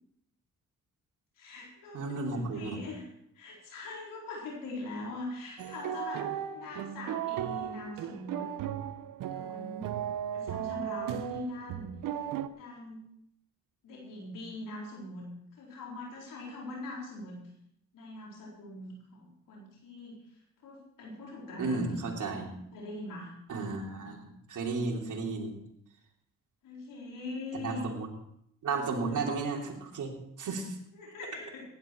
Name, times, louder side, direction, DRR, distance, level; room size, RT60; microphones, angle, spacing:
voice 1, 1.4-3.1 3.3-8.5 9.3-10.0 10.3-11.9 12.6-13.0 13.8-17.4 17.9-20.2 20.6-22.0 22.7-23.3 26.6-27.9 29.1-29.3 30.9-31.6, left 2 dB, 85° left, -3 dB, 4.4 m, -42 dB
voice 2, 1.9-2.8 21.6-22.5 23.5-25.6 27.5-28.1 28.6-30.1 30.4-30.8, right 3 dB, 70° right, 0 dB, 3.2 m, -33 dB
sound 1, 5.6-12.5, right 10 dB, 85° right, 0.8 m, -36 dB
16.0 x 11.0 x 4.6 m, 0.73 s
cardioid pair, 70°, 32 cm